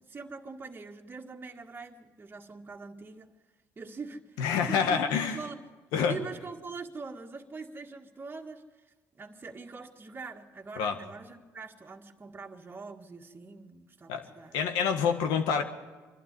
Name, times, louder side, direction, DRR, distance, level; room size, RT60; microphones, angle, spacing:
voice 1, 0.0-3.3 3.8-4.4 4.7-5.6 6.1-8.6 9.1-14.6, right 4 dB, 30° right, 1 dB, 1.8 m, -43 dB
voice 2, 4.4-5.4 5.9-6.2 10.8-11.0 14.1-14.3 14.5-15.6, left 6 dB, 85° left, 5 dB, 1.8 m, -27 dB
24.5 x 12.0 x 9.6 m, 1.3 s
supercardioid pair, 75°, 7 cm